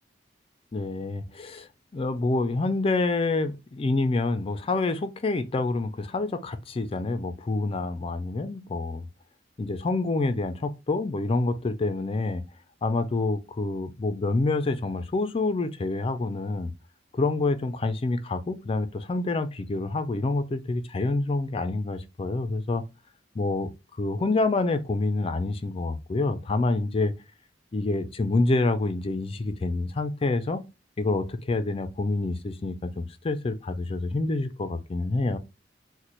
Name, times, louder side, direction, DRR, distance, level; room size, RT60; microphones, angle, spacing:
voice 1, 0.7-1.7 1.9-9.0 9.6-12.4 12.8-16.7 17.1-22.8 23.4-23.7 24.0-27.1 27.7-30.6 31.0-35.4, left 2 dB, 30° left, 0.4 m, -27 dB
4.1 x 2.1 x 3.0 m
head